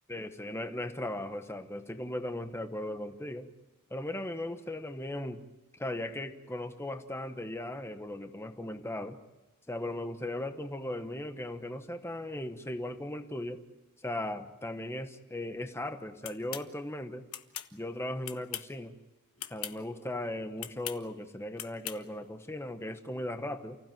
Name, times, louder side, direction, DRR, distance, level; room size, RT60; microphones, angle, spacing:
voice 1, 0.1-3.5 3.9-5.4 5.7-9.2 9.7-13.6 14.0-17.3 17.7-18.9 19.5-23.8, left 1 dB, 10° left, 8 dB, 1.1 m, -37 dB
sound 1, 16.2-16.7 17.3-17.7 18.2-18.8 19.4-19.8 20.6-21.0 21.6-22.0, left 11 dB, 70° left, 1.3 m, -39 dB
29.5 x 16.0 x 9.2 m, 1.1 s
head